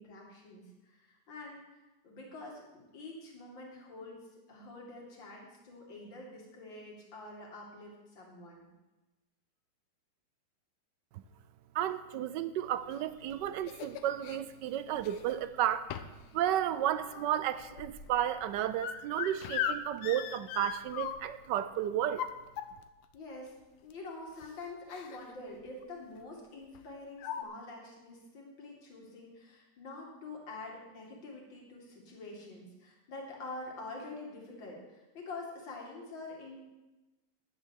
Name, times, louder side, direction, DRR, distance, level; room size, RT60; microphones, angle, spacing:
voice 1, 0.0-8.7 23.1-23.6 23.8-36.7, left 2 dB, 60° left, -1 dB, 3.0 m, -46 dB
voice 2, 11.7-15.9 16.3-22.3, right 11 dB, 75° right, 13 dB, 1.0 m, -32 dB
sound 1, 12.9-14.4 15.0-15.5 15.9-16.3 16.6-21.5 22.0-23.0 23.9-24.0 24.3-24.5 24.9-25.3 25.6-25.8 26.7-26.8 27.2-27.4, left 9 dB, 85° left, 1.6 m, -39 dB
10.5 x 9.5 x 6.4 m, 1.1 s
omnidirectional pair, 2.4 m